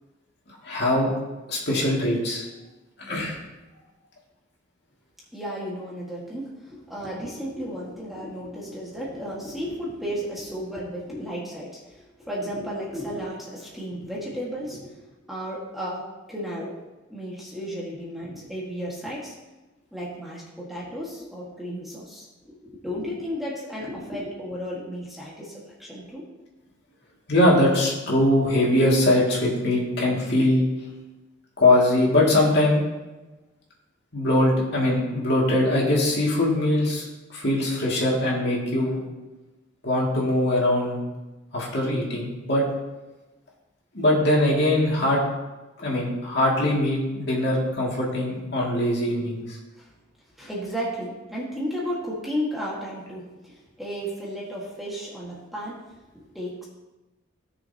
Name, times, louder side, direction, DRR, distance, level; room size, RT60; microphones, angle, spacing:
voice 1, 0.6-1.1 1.5-2.4 3.0-3.4 27.3-30.6 31.6-32.8 34.1-37.0 37.3-39.0 39.8-41.0 41.5-42.6 43.9-45.2 45.8-49.6, left 1 dB, 55° left, -4 dB, 2.5 m, -22 dB
voice 2, 5.3-15.0 15.3-16.8 17.1-19.3 19.9-26.2 49.8-49.9 50.4-55.8 56.1-56.7, equal, ahead, -6 dB, 1.8 m, -33 dB
17.0 x 6.8 x 3.0 m, 1.1 s
head